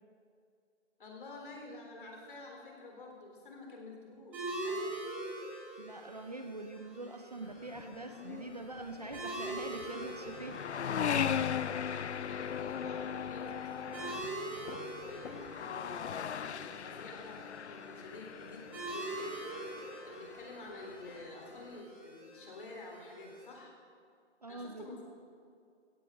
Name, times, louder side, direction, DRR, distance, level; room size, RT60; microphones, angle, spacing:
voice 1, 1.0-4.9 11.4-14.4 15.1-19.3 20.0-23.7 24.5-25.0, left 2 dB, 45° left, 0 dB, 3.4 m, -49 dB
sound 1, 4.3-23.5, right 2 dB, 5° right, 1.1 m, -44 dB
voice 2, 5.8-10.6 24.4-24.9, right 2 dB, 35° right, 6 dB, 0.5 m, -44 dB
sound 2, 7.4-21.8, left 8 dB, 70° left, 0.6 m, -39 dB
16.5 x 15.0 x 3.7 m, 2.3 s
hypercardioid pair, 170°, 35 cm